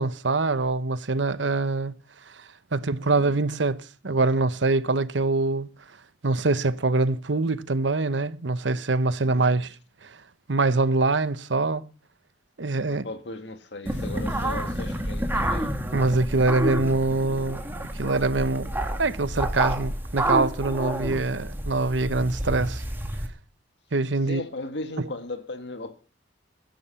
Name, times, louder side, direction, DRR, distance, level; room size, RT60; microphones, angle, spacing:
voice 1, 0.0-1.9 2.7-5.7 6.2-9.7 10.5-11.9 12.6-13.0 15.9-22.8 23.9-24.4 25.0-25.1, right 3 dB, 80° right, 1.0 m, -24 dB
voice 2, 9.2-9.6 12.9-15.7 24.2-25.9, left 2 dB, 70° left, 1.9 m, -37 dB
sound 1, 13.9-23.3, right 1 dB, 10° right, 2.1 m, -29 dB
16.5 x 12.0 x 5.8 m
head